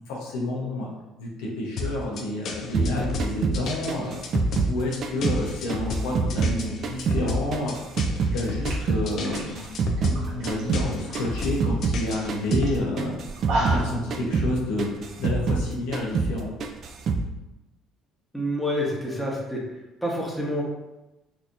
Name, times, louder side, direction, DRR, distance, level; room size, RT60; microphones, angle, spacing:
voice 1, 0.1-0.9 1.2-4.2 4.6-7.8 8.2-9.7 10.3-13.2 13.6-14.9 15.2-16.5, left 1 dB, 90° left, -2 dB, 0.8 m, -29 dB
sound 1, 1.8-12.8, left 2 dB, 60° left, 0.5 m, -32 dB
sound 2, 2.7-5.4 5.7-8.4 8.7-12.0 12.3-12.7 13.0-15.7 15.9-16.4 16.6-17.3, right 4 dB, 50° right, 0.4 m, -26 dB
sound 3, 8.3-8.4 8.6-10.6 10.9-11.4 11.7-11.8 12.1-12.3 12.7-12.8 13.2-14.0, right 2 dB, 70° right, 1.2 m, -32 dB
voice 2, 18.3-19.6 20.0-20.6, equal, ahead, -3 dB, 1.0 m, -27 dB
4.0 x 2.7 x 2.5 m, 1.0 s
supercardioid pair, 95°, 0 cm